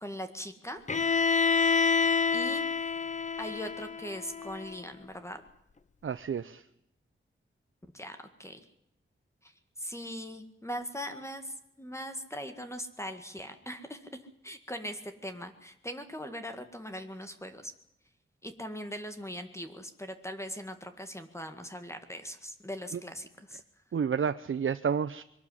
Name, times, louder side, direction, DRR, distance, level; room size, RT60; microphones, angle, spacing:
voice 1, 0.0-0.8 2.3-2.7 3.4-5.4 7.9-8.6 9.8-14.0 14.4-17.7 18.4-23.6, equal, 15° left, 8 dB, 1.9 m, -40 dB
Bowed string instrument, 0.9-4.8, left 5 dB, 35° left, 0.9 m, -28 dB
voice 2, 6.0-6.6 22.9-23.0 23.9-25.2, right 7 dB, 70° right, 10 dB, 0.7 m, -30 dB
22.5 x 13.5 x 9.8 m, 0.81 s
wide cardioid pair, 120°, 21 cm